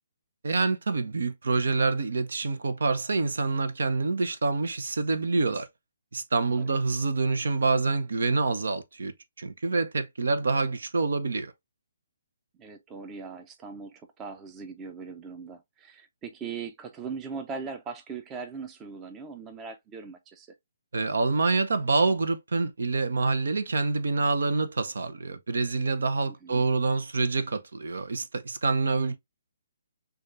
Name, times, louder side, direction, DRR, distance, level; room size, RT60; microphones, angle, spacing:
voice 1, 0.4-5.7 6.1-11.5 20.9-29.2, right 3 dB, 75° right, 0.7 m, -26 dB
voice 2, 12.6-20.5 26.3-26.6, right 5 dB, 20° right, 0.6 m, -40 dB
6.4 x 2.4 x 2.5 m
hypercardioid pair, 145°, 0 cm